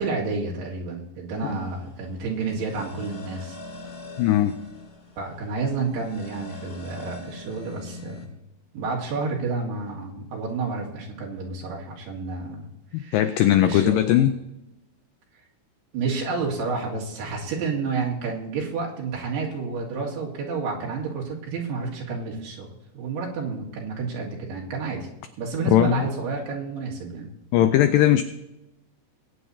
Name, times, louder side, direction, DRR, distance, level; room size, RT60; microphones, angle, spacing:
voice 1, 0.0-3.6 5.2-8.3 8.7-12.7 13.0-13.2 13.6-14.3 15.9-22.7 22.9-25.1 25.4-27.3, right 4 dB, 80° right, -2 dB, 4.1 m, -30 dB
sound 1, 1.3-8.3, left 2 dB, 45° left, 7.0 m, -42 dB
voice 2, 4.2-4.6 12.9-14.3 25.7-26.1 27.5-28.2, left 12 dB, 85° left, 10 dB, 1.9 m, -19 dB
21.0 x 9.4 x 2.7 m, 0.89 s
omnidirectional pair, 4.6 m